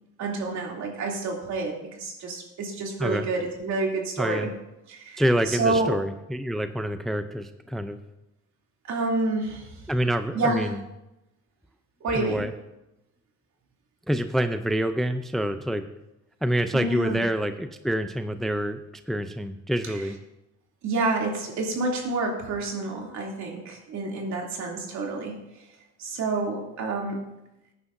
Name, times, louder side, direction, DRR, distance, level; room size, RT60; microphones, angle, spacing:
voice 1, 0.2-4.5 4.9-5.9 8.8-9.7 10.3-10.7 12.0-12.4 16.7-17.2 20.8-25.4 26.0-27.2, right 3 dB, 70° right, -1 dB, 2.9 m, -28 dB
voice 2, 4.2-4.5 5.2-8.0 9.9-10.8 12.1-12.5 14.1-15.8 16.4-18.8 19.1-20.2, equal, ahead, 8 dB, 0.5 m, -27 dB
18.5 x 9.7 x 2.6 m, 0.92 s
cardioid pair, 125°, 29 cm